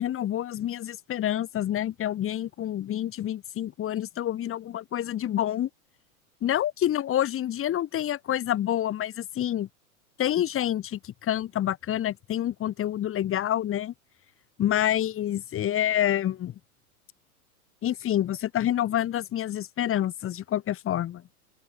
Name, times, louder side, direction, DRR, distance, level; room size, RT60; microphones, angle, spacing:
voice 1, 0.0-5.7 6.4-9.7 10.2-13.9 14.6-16.5 17.8-21.2, left 11 dB, 30° left, 4.0 m, -27 dB
open air
hypercardioid pair, 105°, 44 cm